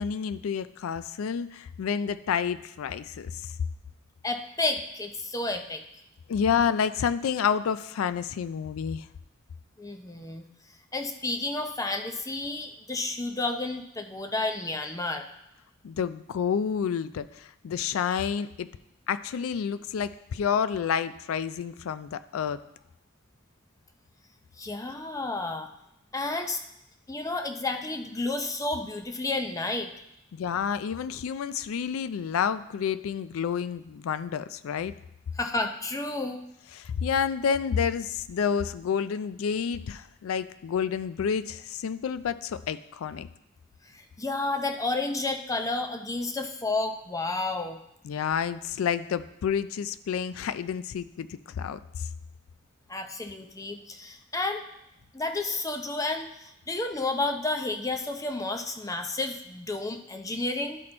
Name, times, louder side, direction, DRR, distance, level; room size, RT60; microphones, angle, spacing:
voice 1, 0.0-3.5 6.3-9.1 15.8-18.7 19.1-22.6 30.3-34.9 36.7-43.3 48.0-52.1, left 7 dB, 85° left, 14 dB, 0.3 m, -29 dB
voice 2, 4.2-5.8 9.8-10.5 10.9-15.2 24.6-25.7 26.1-26.6 27.1-29.9 35.4-36.4 43.9-47.8 52.9-54.6 55.1-60.8, left 2 dB, 15° left, 6 dB, 0.5 m, -31 dB
11.5 x 4.2 x 4.3 m, 0.83 s
head